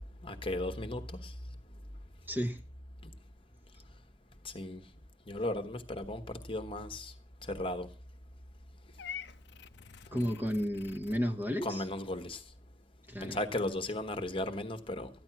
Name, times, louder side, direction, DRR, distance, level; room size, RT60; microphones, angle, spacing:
voice 1, 0.2-1.3 4.4-4.8 5.3-7.1 7.5-7.9 10.1-10.3 11.6-12.4 13.2-15.1, left 1 dB, 25° left, 1.2 m, -36 dB
voice 2, 2.3-2.6 10.1-11.8 13.1-13.4, equal, 10° right, 1.0 m, -32 dB
Purr / Meow, 9.0-11.2, left 8 dB, 55° left, 0.7 m, -46 dB
14.5 x 10.5 x 5.9 m
head